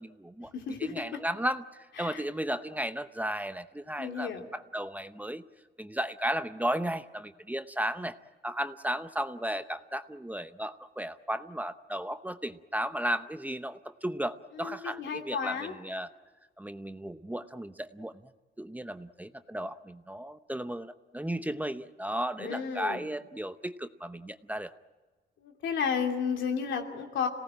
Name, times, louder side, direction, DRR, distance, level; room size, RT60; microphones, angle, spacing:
voice 1, 0.0-0.5 0.8-5.4 5.8-8.2 8.4-16.1 16.6-18.1 18.6-24.7, right 1 dB, 10° right, 10 dB, 0.8 m, -34 dB
voice 2, 0.5-1.2 2.0-2.2 4.0-4.5 14.5-15.7 22.4-23.1 25.4-27.3, left 6 dB, 80° left, 3 dB, 3.0 m, -33 dB
26.5 x 18.5 x 8.9 m, 1.3 s
cardioid pair, 100°, 19 cm